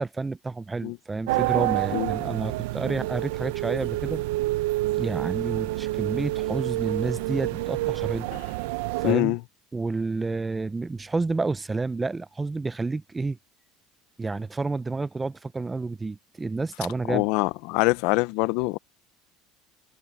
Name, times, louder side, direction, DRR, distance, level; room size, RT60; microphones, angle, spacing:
voice 1, 0.0-4.2 4.9-8.3 9.0-9.4 9.7-13.4 14.2-17.3, right 3 dB, 15° right, 0.7 m, -30 dB
sound 1, 1.3-9.1, right 18 dB, 85° right, 0.6 m, -28 dB
voice 2, 9.0-9.4 17.1-18.8, left 22 dB, 75° left, 0.7 m, -24 dB
supercardioid pair, 115°, 0 cm